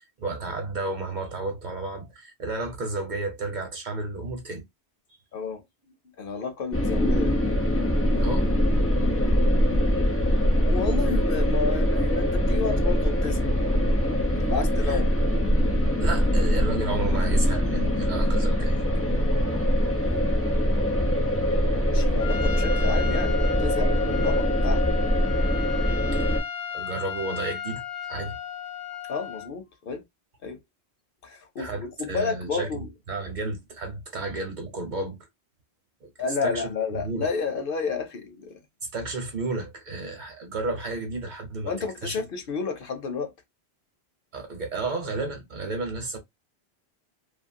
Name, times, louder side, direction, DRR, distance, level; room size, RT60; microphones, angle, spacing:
voice 1, 0.2-4.6 8.2-8.5 14.9-15.0 16.0-18.7 26.7-28.4 31.6-32.7 33.1-35.2 36.0-36.1 36.4-37.3 38.9-41.7 42.0-42.2 44.3-46.2, right 3 dB, 50° right, 0.9 m, -32 dB
voice 2, 5.3-5.6 6.2-7.3 9.5-9.9 10.6-13.4 14.4-15.1 20.0-21.0 21.9-24.8 29.1-30.0 30.4-30.6 31.2-32.9 36.2-38.6 41.7-43.3, left 5 dB, 60° left, 0.8 m, -31 dB
sound 1, 6.7-26.4, equal, 15° left, 0.5 m, -23 dB
Trumpet, 22.2-29.5, left 8 dB, 90° left, 0.9 m, -35 dB
2.7 x 2.5 x 2.6 m
omnidirectional pair, 1.1 m